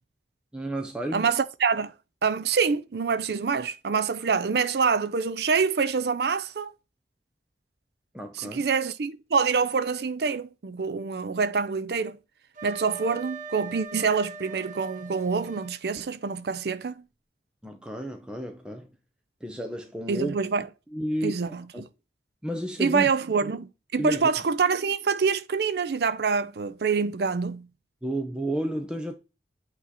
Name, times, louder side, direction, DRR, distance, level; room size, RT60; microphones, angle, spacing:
voice 1, 0.5-1.3 8.1-8.7 17.6-18.9 19.4-20.4 20.9-21.8 22.4-23.1 23.4-23.5 24.0-24.3 28.0-29.2, right 1 dB, 5° right, 0.7 m, -32 dB
voice 2, 1.1-1.9 2.2-6.7 8.4-12.2 12.6-17.0 20.1-20.7 21.2-21.6 22.8-27.7, right 5 dB, 65° right, 0.5 m, -26 dB
Wind instrument woodwind instrument, 12.5-15.7, right 4 dB, 45° right, 1.2 m, -41 dB
8.5 x 3.1 x 4.1 m
head